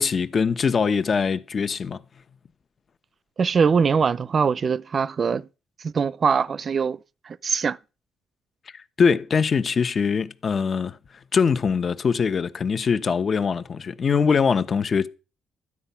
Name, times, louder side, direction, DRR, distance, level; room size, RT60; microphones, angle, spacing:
voice 1, 0.0-2.0 9.0-11.0 11.3-15.1, left 6 dB, 45° left, 1.1 m, -22 dB
voice 2, 3.4-5.5 5.8-7.0 7.2-7.8, right 6 dB, 45° right, 0.6 m, -22 dB
13.5 x 9.9 x 5.7 m
cardioid pair, 90°, 0 cm